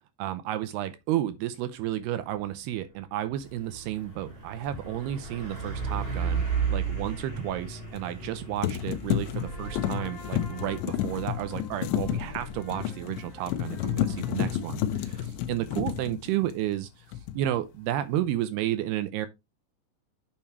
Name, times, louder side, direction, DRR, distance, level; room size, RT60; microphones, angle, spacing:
voice 1, 0.2-17.1 17.3-19.3, right 13 dB, 80° right, 2.5 m, -32 dB
Truck, 2.9-15.4, right 5 dB, 15° right, 2.5 m, -36 dB
sound 1, 4.7-4.8 8.0-8.3 8.6-16.8 17.1-17.6, left 11 dB, 85° left, 3.2 m, -31 dB
sound 2, 9.4-16.7, left 1 dB, 20° left, 3.4 m, -45 dB
8.8 x 6.7 x 3.0 m
omnidirectional pair, 5.1 m